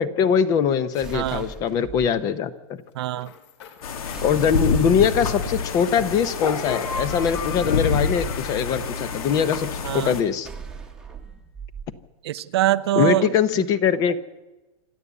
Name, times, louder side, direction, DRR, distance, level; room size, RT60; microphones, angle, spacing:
voice 1, 0.0-2.5 4.2-10.5 13.0-14.2, left 7 dB, 20° left, 0.6 m, -22 dB
sound 1, 0.9-1.6 2.9-9.9, left 8 dB, 50° left, 2.8 m, -45 dB
sound 2, 1.0-2.1 4.1-5.1 7.2-8.3 10.4-11.9, right 6 dB, 5° right, 1.1 m, -39 dB
voice 2, 1.1-1.4 2.9-3.3 9.8-10.1 12.2-13.7, right 14 dB, 45° right, 0.6 m, -24 dB
sound 3, 3.8-10.2, left 4 dB, 75° left, 2.9 m, -27 dB
26.5 x 12.5 x 8.2 m
supercardioid pair, 175°, 19 cm